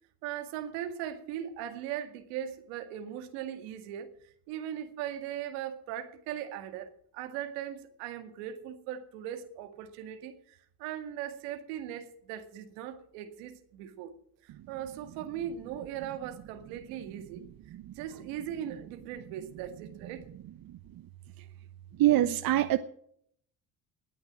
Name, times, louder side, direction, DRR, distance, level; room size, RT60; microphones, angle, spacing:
voice 1, 0.2-4.1 4.5-14.1 14.4-17.5 18.0-20.3, right 10 dB, 85° right, 7 dB, 2.1 m, -39 dB
voice 2, 22.0-22.8, right 14 dB, 55° right, 11 dB, 1.0 m, -24 dB
19.0 x 9.0 x 6.2 m, 0.66 s
supercardioid pair, 75°, 41 cm